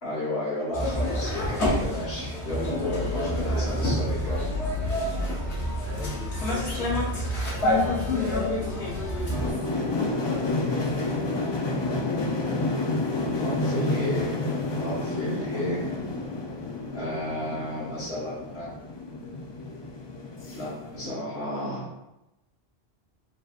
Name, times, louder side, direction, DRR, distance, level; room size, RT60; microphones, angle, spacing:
voice 1, 0.0-4.4 13.4-14.4 14.8-15.8 16.9-18.7 20.5-21.9, left 1 dB, 65° left, -7 dB, 1.8 m, -32 dB
sound 1, 0.7-9.5, left 1 dB, 80° left, 1.4 m, -27 dB
voice 2, 4.8-7.1 7.9-8.8 9.1-11.0, right 1 dB, 70° right, -4 dB, 1.3 m, -41 dB
sound 2, 9.3-21.1, left 2 dB, 45° left, 0.3 m, -30 dB
4.7 x 3.2 x 2.5 m, 0.91 s
omnidirectional pair, 1.1 m